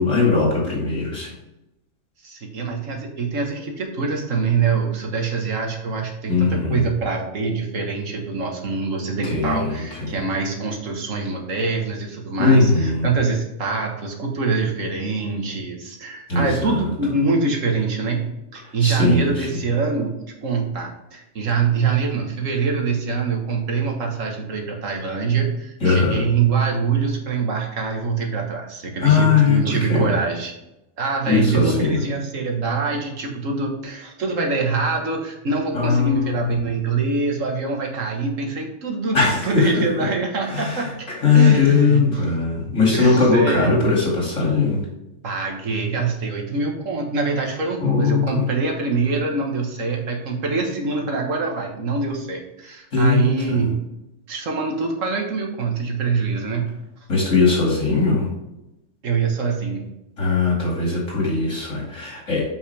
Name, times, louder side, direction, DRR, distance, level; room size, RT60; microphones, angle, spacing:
voice 1, 0.0-1.3 6.3-6.9 9.2-10.2 12.4-13.1 16.3-16.9 18.6-19.5 25.8-26.2 29.0-29.6 29.9-30.1 31.3-32.0 35.7-36.5 39.1-40.1 40.5-44.8 47.8-48.5 52.9-53.6 57.1-58.3 60.2-62.5, left 4 dB, 85° left, -3 dB, 2.9 m, -19 dB
voice 2, 2.2-18.2 18.5-30.5 31.0-40.9 41.3-42.0 42.9-43.8 45.2-53.8 54.3-56.6 59.0-59.9, right 4 dB, 85° right, 1 dB, 1.8 m, -24 dB
7.4 x 5.8 x 3.4 m, 0.90 s
omnidirectional pair, 1.3 m